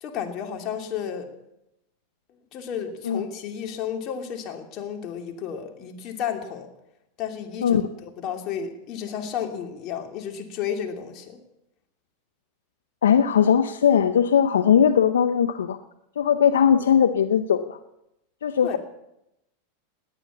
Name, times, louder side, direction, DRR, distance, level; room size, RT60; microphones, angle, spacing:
voice 1, 0.0-1.3 2.5-6.7 7.2-11.4 18.6-18.8, left 8 dB, 45° left, 4 dB, 2.8 m, -32 dB
voice 2, 13.0-15.8 16.2-17.8 18.4-18.8, left 8 dB, 80° left, 10 dB, 0.7 m, -19 dB
18.5 x 9.8 x 7.4 m, 0.86 s
hypercardioid pair, 100°, 0 cm